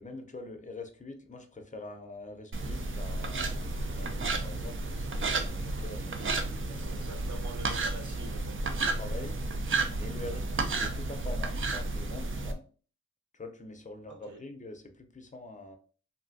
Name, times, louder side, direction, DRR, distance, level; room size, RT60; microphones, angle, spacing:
voice 1, 0.0-7.0 9.0-9.4 10.0-12.6 13.3-15.8, left 2 dB, 25° left, 0.6 m, -45 dB
sound 1, 2.5-12.5, right 3 dB, 45° right, 0.5 m, -32 dB
voice 2, 6.7-9.0 14.1-14.4, right 4 dB, 80° right, 0.8 m, -47 dB
3.3 x 2.7 x 2.5 m
wide cardioid pair, 80°, 30 cm